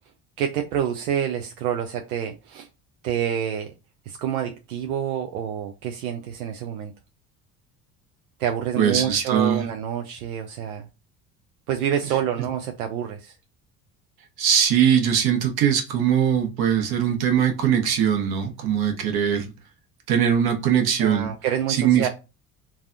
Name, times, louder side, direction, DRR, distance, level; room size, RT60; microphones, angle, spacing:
voice 1, 0.4-2.7 3.0-3.7 4.1-6.9 8.4-10.9 11.7-13.3 21.0-22.1, right 9 dB, 85° right, 0.5 m, -27 dB
voice 2, 8.8-9.7 14.4-19.5 20.1-21.3 21.7-22.0, right 8 dB, 60° right, 1.1 m, -21 dB
3.3 x 2.2 x 2.5 m
hypercardioid pair, 70°, 42 cm